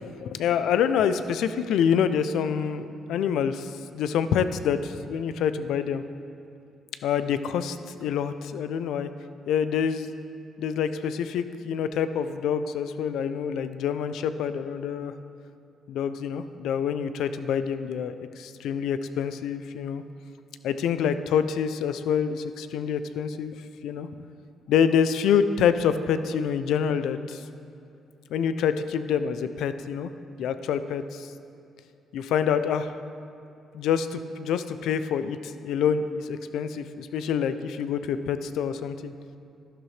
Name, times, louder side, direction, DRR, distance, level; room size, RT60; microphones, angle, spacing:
voice 1, 0.0-6.0 7.0-9.1 9.5-10.1 10.6-15.1 15.9-20.0 20.6-23.6 23.8-24.1 24.7-27.4 28.3-30.1 30.4-31.3 32.1-32.9 33.7-39.1, left 7 dB, 85° left, 11 dB, 0.5 m, -26 dB
12.0 x 11.0 x 3.3 m, 2.7 s
cardioid pair, 90°, 0 cm